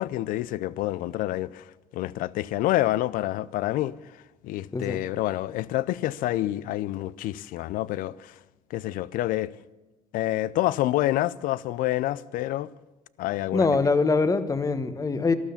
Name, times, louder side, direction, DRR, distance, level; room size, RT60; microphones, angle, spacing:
voice 1, 0.0-4.2 4.4-8.4 8.7-9.5 10.1-12.7 13.2-13.7, left 15 dB, 75° left, 0.5 m, -28 dB
voice 2, 13.5-15.3, left 4 dB, 25° left, 1.2 m, -23 dB
12.5 x 12.5 x 7.0 m
supercardioid pair, 85°, 14 cm